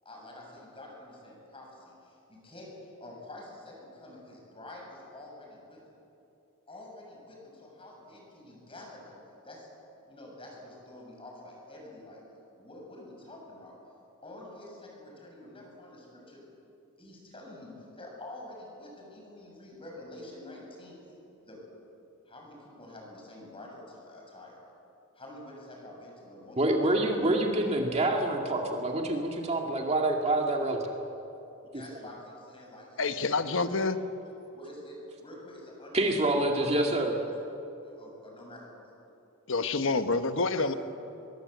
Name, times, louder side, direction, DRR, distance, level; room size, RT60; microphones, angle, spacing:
voice 1, 0.0-2.7 3.0-5.8 6.7-9.2 9.4-9.7 10.1-12.2 12.6-13.8 14.2-16.6 17.0-21.1 21.4-21.6 22.3-24.6 25.1-26.6 31.7-33.7 34.5-37.0 37.8-38.9 40.5-40.8, left 1 dB, 25° left, -1 dB, 7.1 m, -48 dB
voice 2, 26.6-30.8 35.9-37.1, right 1 dB, 30° right, 1 dB, 2.2 m, -26 dB
voice 3, 33.0-34.0 39.5-40.7, left 3 dB, 65° left, 9 dB, 1.2 m, -27 dB
24.5 x 23.0 x 8.1 m, 2.9 s
head